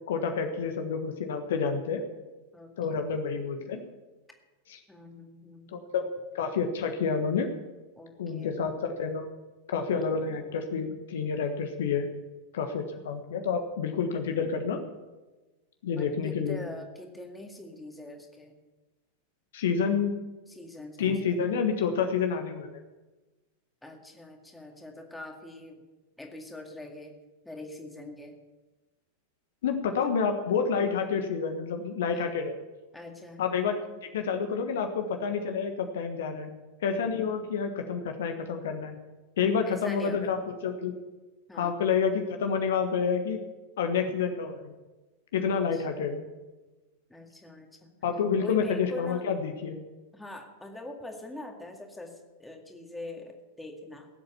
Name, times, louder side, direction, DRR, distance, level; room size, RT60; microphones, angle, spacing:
voice 1, 0.1-2.0 2.8-3.8 4.7-4.8 5.7-6.1 6.3-7.5 8.2-9.2 9.7-12.1 12.5-14.8 15.8-16.6 19.5-20.2 21.0-22.8 29.6-32.5 33.4-36.5 36.8-39.0 39.4-40.9 41.5-43.4 43.8-44.8 45.3-46.3 48.0-49.8, left 6 dB, 60° left, 6 dB, 1.3 m, -29 dB
voice 2, 4.9-6.0 8.0-8.5 15.9-18.6 20.5-21.4 23.8-25.8 26.2-27.1 27.4-28.4 32.1-32.3 32.9-33.5 39.7-40.4 41.5-41.7 45.7-46.2 47.1-47.9 48.4-49.2 50.1-54.1, left 2 dB, 5° left, 2 dB, 2.1 m, -43 dB
18.0 x 8.0 x 7.0 m, 1.2 s
figure-of-eight pair, 90°, 0 cm